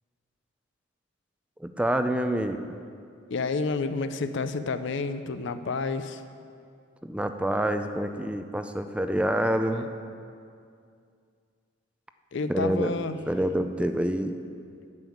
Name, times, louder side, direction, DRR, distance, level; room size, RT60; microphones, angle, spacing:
voice 1, 1.6-2.8 7.0-9.9 12.5-12.9 13.3-14.4, right 1 dB, 5° right, 7 dB, 0.4 m, -27 dB
voice 2, 3.3-6.2 9.7-9.9 12.3-13.2, left 4 dB, 65° left, 10 dB, 0.5 m, -30 dB
9.6 x 7.1 x 8.4 m, 2.3 s
head